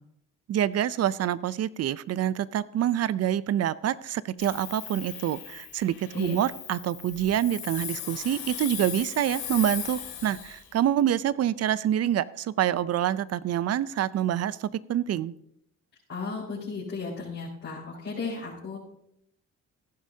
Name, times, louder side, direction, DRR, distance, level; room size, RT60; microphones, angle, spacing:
voice 1, 0.5-15.3, right 11 dB, 55° right, 18 dB, 0.5 m, -26 dB
Hiss, 4.4-10.7, left 9 dB, 85° left, 2.5 m, -38 dB
voice 2, 16.1-18.8, left 4 dB, 45° left, -7 dB, 4.9 m, -34 dB
15.0 x 11.5 x 2.8 m, 0.75 s
cardioid pair, 90°, 30 cm